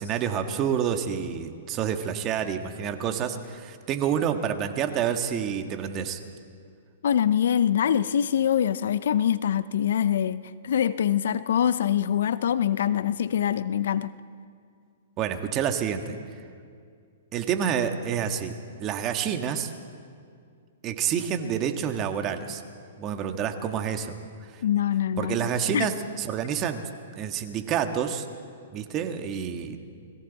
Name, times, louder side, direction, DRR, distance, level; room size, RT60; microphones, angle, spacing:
voice 1, 0.0-6.2 15.2-16.2 17.3-19.7 20.8-22.6 23.0-24.2 24.5-24.6 25.2-26.8 27.1-28.2 28.7-29.8, right 8 dB, 30° right, 1.6 m, -28 dB
voice 2, 7.0-14.1 24.6-25.9, left 9 dB, 70° left, 0.7 m, -24 dB
29.5 x 21.5 x 4.2 m
hypercardioid pair, 130°, 0 cm